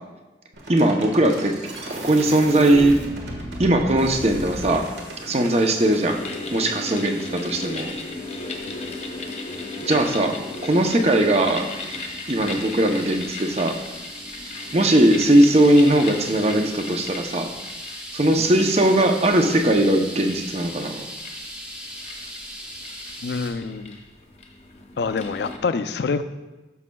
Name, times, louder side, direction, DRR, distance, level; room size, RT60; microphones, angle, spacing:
sound 1, 0.5-6.0, right 1 dB, 80° right, 1.5 m, -35 dB
voice 1, 0.7-1.5 1.9-2.9 3.6-4.8 5.3-6.2 6.5-7.9 9.8-10.3 10.6-11.7 12.3-13.7 14.7-17.5 18.1-21.1, right 1 dB, 35° right, 4 dB, 0.6 m, -19 dB
sound 2, 4.0-23.5, equal, 5° right, 1.0 m, -40 dB
sound 3, 6.1-25.6, left 3 dB, 35° left, 0.7 m, -36 dB
voice 2, 23.2-24.0 25.0-26.2, left 4 dB, 70° left, 11 dB, 0.4 m, -27 dB
12.5 x 6.1 x 2.3 m, 1.1 s
head